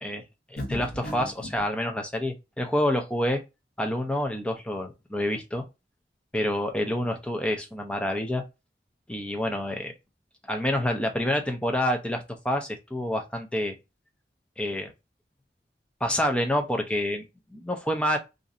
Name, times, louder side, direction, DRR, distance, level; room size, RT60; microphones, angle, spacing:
voice 1, 0.5-3.4 3.8-5.7 6.3-8.4 9.1-9.9 10.5-13.8 14.6-14.9 16.0-18.2, left 1 dB, 5° left, 0.5 m, -28 dB
sound 1, 0.6-1.7, equal, 65° left, 0.8 m, -35 dB
2.6 x 2.5 x 4.0 m
head